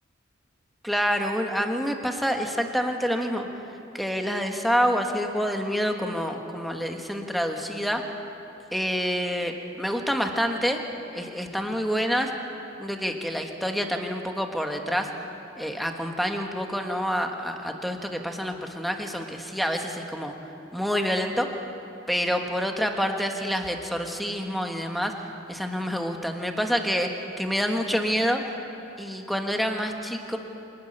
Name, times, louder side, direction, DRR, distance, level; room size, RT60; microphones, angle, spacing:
voice 1, 0.8-3.5 3.9-8.0 8.7-10.8 11.1-12.3 12.8-15.1 15.6-20.3 20.7-21.5 22.1-25.1 25.5-27.1 27.4-28.5 29.0-30.4, equal, ahead, 3 dB, 1.4 m, -27 dB
25.0 x 12.0 x 9.9 m, 2.9 s
head